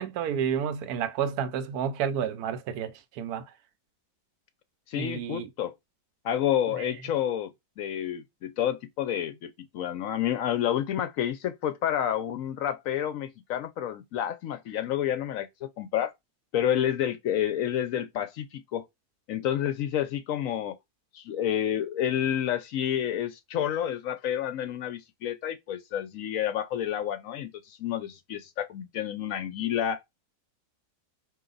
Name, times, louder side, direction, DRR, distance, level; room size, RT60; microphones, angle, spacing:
voice 1, 0.0-3.4 4.9-5.5 6.8-6.9, right 8 dB, 75° right, 1.1 m, -30 dB
voice 2, 4.9-5.7 6.2-7.5 7.8-16.1 16.5-18.8 19.3-20.8 21.1-30.0, left 10 dB, 70° left, 0.9 m, -29 dB
4.4 x 2.7 x 3.8 m
omnidirectional pair, 1.6 m